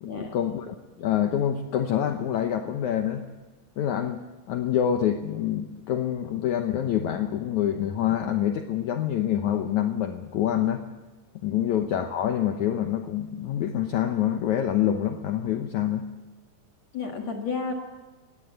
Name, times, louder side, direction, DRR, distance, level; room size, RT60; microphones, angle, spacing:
voice 1, 0.0-3.3 3.8-4.2 4.5-10.8 11.4-16.0, left 10 dB, 75° left, 6 dB, 1.8 m, -26 dB
voice 2, 16.9-17.7, left 4 dB, 55° left, 2 dB, 2.3 m, -31 dB
20.0 x 17.0 x 8.0 m, 1.3 s
omnidirectional pair, 4.6 m